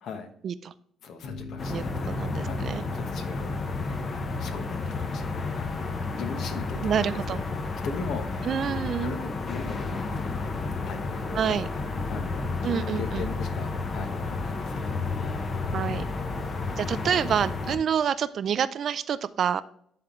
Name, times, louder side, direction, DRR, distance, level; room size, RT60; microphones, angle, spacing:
voice 1, 0.0-0.3 1.0-3.5 3.8-7.5 7.8-8.6 9.0-10.5 10.9-15.0, left 5 dB, 70° left, 1.1 m, -40 dB
sound 1, 1.2-6.4, left 4 dB, 85° left, 1.9 m, -45 dB
sound 2, 1.6-17.8, left 3 dB, 35° left, 0.8 m, -31 dB
voice 2, 1.7-2.8 6.8-7.4 8.4-9.2 11.3-11.7 12.6-13.3 15.7-16.1 16.8-19.6, right 8 dB, 50° right, 0.4 m, -28 dB
11.0 x 3.7 x 3.0 m
cardioid pair, 110°, 0 cm